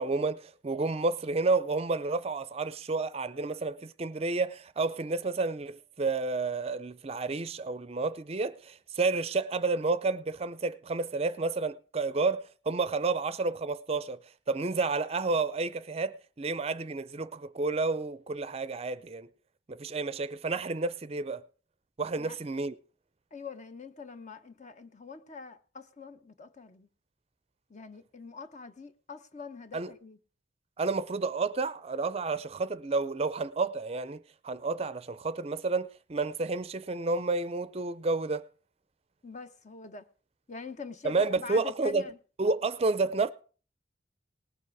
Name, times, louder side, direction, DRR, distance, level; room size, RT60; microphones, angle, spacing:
voice 1, 0.0-14.2 14.5-19.3 19.7-21.4 22.0-22.8 29.7-29.9 30.8-38.5 41.0-42.0 42.4-43.3, right 3 dB, 35° right, 0.5 m, -30 dB
voice 2, 23.3-26.9 27.7-30.2 39.2-40.1 40.5-42.2, left 5 dB, 40° left, 0.9 m, -44 dB
19.0 x 7.4 x 4.7 m
head